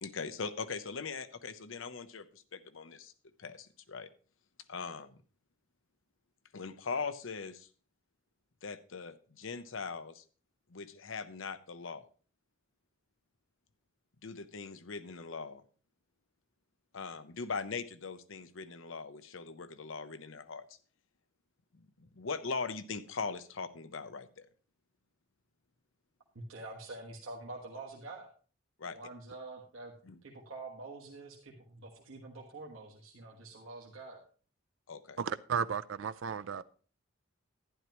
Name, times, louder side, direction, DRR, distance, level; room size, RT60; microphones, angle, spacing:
voice 1, 0.0-3.1 3.4-4.1 4.7-5.2 6.5-7.7 8.6-10.2 10.7-12.1 14.2-15.6 16.9-20.6 21.7-24.5 28.8-29.0 30.0-30.2 34.9-35.2, left 4 dB, 70° left, 0.7 m, -40 dB
voice 2, 26.3-28.3 28.8-29.9 30.2-34.2, right 2 dB, 85° right, 1.5 m, -46 dB
voice 3, 35.2-36.6, right 7 dB, 65° right, 0.4 m, -34 dB
11.5 x 10.5 x 3.0 m
head